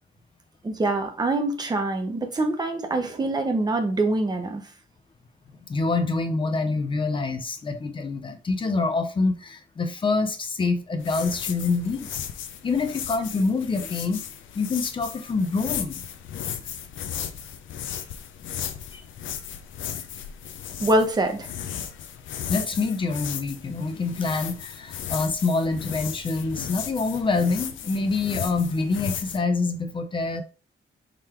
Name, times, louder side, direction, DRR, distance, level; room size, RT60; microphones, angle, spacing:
voice 1, 0.6-4.6 20.8-21.5, right 2 dB, 20° right, 0.8 m, -24 dB
voice 2, 5.6-12.1 12.6-14.2 14.5-16.0 18.9-19.0 22.5-30.4, left 3 dB, 25° left, 0.6 m, -26 dB
sound 1, 11.0-29.4, left 9 dB, 90° left, 0.6 m, -35 dB
3.8 x 3.2 x 4.4 m
wide cardioid pair, 160°, 19 cm